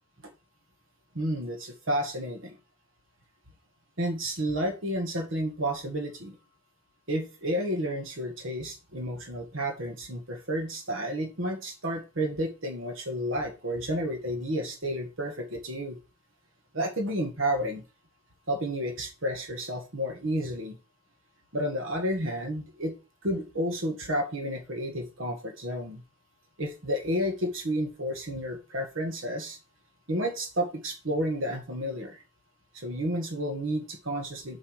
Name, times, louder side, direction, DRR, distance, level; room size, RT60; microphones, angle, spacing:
voice 1, 1.1-2.6 4.0-6.4 7.1-16.0 16.7-17.8 18.5-20.8 21.5-23.0 23.2-26.0 26.6-29.6 30.1-32.2 32.7-34.6, equal, 70° right, 5 dB, 1.7 m, -31 dB
7.7 x 5.0 x 4.8 m, 0.32 s
head